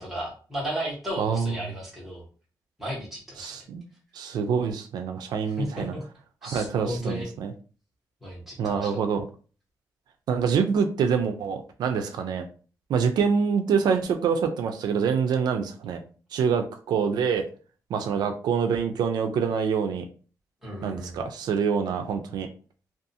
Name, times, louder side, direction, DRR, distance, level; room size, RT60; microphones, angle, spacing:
voice 1, 0.0-2.2 2.8-3.5 5.6-6.0 6.4-7.3 8.2-8.9 20.6-21.2, equal, 5° right, -6 dB, 1.1 m, -34 dB
voice 2, 1.2-1.5 3.4-3.8 4.1-5.9 6.4-7.5 8.6-9.2 10.3-12.5 12.9-16.0 16.3-17.5 17.9-20.1 20.8-22.5, right 6 dB, 80° right, 6 dB, 0.4 m, -26 dB
2.5 x 2.3 x 2.6 m, 0.38 s
wide cardioid pair, 175°, 7 cm